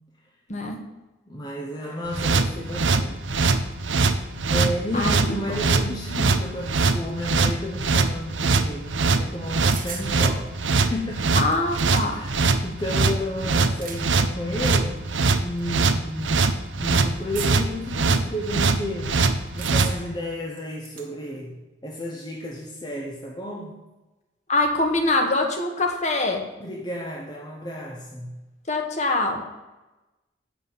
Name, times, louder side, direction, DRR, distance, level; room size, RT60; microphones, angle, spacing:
voice 1, 1.3-3.4 4.5-11.4 12.0-15.0 15.4-19.2 19.5-23.8 26.6-28.4, left 1 dB, 20° left, -1 dB, 0.9 m, -32 dB
sound 1, 2.1-19.9, right 3 dB, 80° right, 0.8 m, -22 dB
voice 2, 4.9-5.6 11.3-12.2 24.5-26.4 28.7-29.4, left 2 dB, 40° left, 3 dB, 1.4 m, -24 dB
sound 2, 9.7-10.1 11.2-11.3 11.5-12.3 13.5-14.1 14.6-14.7 15.6-15.7 17.3-17.8 19.6-20.2 20.6-21.1, right 7 dB, 45° right, 1.3 m, -37 dB
9.3 x 6.1 x 7.0 m, 1.1 s
head